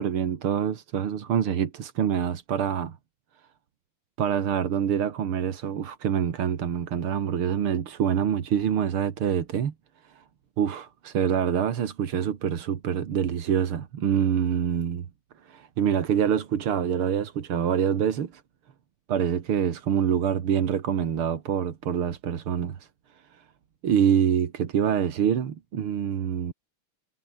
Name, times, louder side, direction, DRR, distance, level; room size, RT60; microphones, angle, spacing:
voice 1, 0.0-3.0 4.2-9.7 10.0-10.2 10.6-15.1 15.4-18.4 19.1-22.9 23.3-23.4 23.8-26.5, right 8 dB, 90° right, 2.6 m, -26 dB
omnidirectional pair, 2.3 m